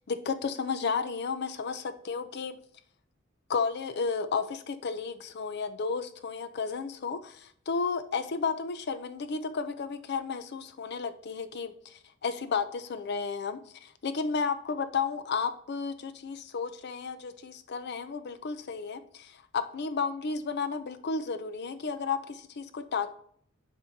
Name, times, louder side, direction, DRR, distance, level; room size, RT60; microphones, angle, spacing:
voice 1, 0.1-2.6 3.5-23.1, left 5 dB, 55° left, 10 dB, 0.5 m, -33 dB
10.5 x 4.3 x 2.8 m, 0.62 s
head